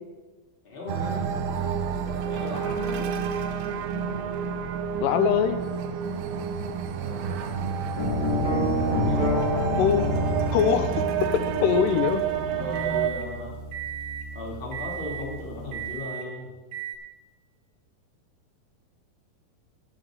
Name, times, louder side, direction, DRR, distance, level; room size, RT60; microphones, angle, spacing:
voice 1, 0.6-1.3 2.3-3.1 7.0-7.6 8.9-9.5 12.5-13.5 14.3-16.5, left 2 dB, 20° left, -3 dB, 2.2 m, -37 dB
sound 1, 0.9-13.1, right 7 dB, 80° right, 2.4 m, -29 dB
sound 2, 2.6-13.3 13.7-14.3 14.7-15.3 15.7-16.3 16.7-17.0, right 9 dB, 65° right, 2.5 m, -41 dB
voice 2, 5.0-5.6 9.8-10.1 10.5-12.2, left 8 dB, 80° left, 10 dB, 2.2 m, -23 dB
sound 3, 7.9-15.8, left 2 dB, 35° left, 2.4 m, -30 dB
13.5 x 5.1 x 7.6 m, 1.3 s
omnidirectional pair, 4.0 m